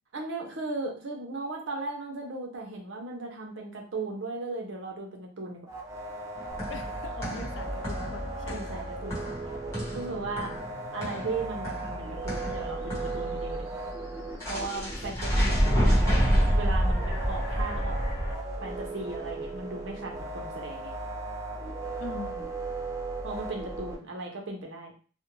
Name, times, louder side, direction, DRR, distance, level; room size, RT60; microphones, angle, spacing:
voice 1, 0.1-5.7 8.5-9.5 9.9-10.5 10.9-13.8 14.5-16.2 16.5-18.0 18.6-20.9 23.2-24.9, right 3 dB, 75° right, 1 dB, 0.7 m, -37 dB
uhhohhhrobot-synth, 5.7-24.0, right 2 dB, 15° right, 0.4 m, -37 dB
sound 1, 6.4-13.3 14.4-18.3, equal, 15° left, 1.0 m, -28 dB
sound 2, 6.5-16.5, equal, 85° left, 1.0 m, -49 dB
voice 2, 6.7-8.7 14.7-15.0 22.0-22.5, left 5 dB, 70° left, 7 dB, 0.4 m, -42 dB
2.4 x 2.1 x 3.0 m, 0.40 s
head